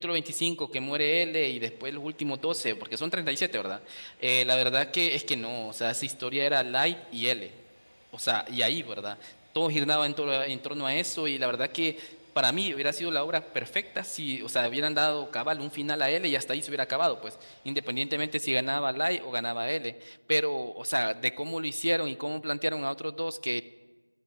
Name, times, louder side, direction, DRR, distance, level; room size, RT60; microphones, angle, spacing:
voice 1, 0.0-7.5 8.1-23.6, equal, 40° right, 15 dB, 0.3 m, -29 dB
sound 1, 1.1-18.4, equal, 20° left, 3.4 m, -59 dB
13.0 x 11.0 x 4.7 m, 1.3 s
figure-of-eight pair, 180°, 0 cm